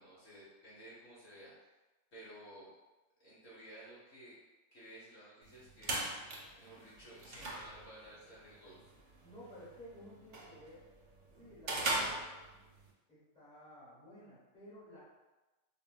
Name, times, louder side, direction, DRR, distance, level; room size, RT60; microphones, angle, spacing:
voice 1, 0.0-1.5 2.1-2.7 3.2-4.4 4.7-6.0 6.6-8.8, right 1 dB, 65° left, -8 dB, 1.4 m, -54 dB
sound 1, 5.4-12.9, right 2 dB, 75° right, 0.9 m, -41 dB
voice 2, 9.2-10.8 11.4-12.3 13.1-15.0, equal, 5° left, -10 dB, 0.9 m, -54 dB
3.7 x 2.2 x 2.3 m, 1.1 s
omnidirectional pair, 1.2 m